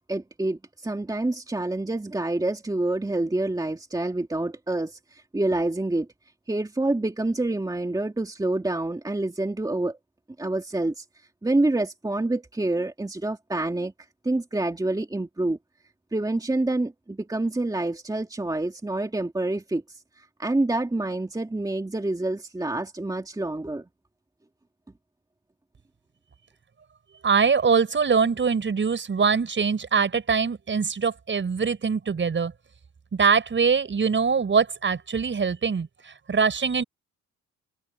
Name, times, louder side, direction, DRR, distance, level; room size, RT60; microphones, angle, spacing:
voice 1, 0.1-6.1 6.5-10.0 10.4-11.0 11.4-13.9 14.2-15.6 16.1-23.8, right 2 dB, 10° right, 2.4 m, -27 dB
voice 2, 27.2-32.5 33.1-36.8, right 5 dB, 40° right, 6.4 m, -23 dB
cardioid pair, 90°, 30 cm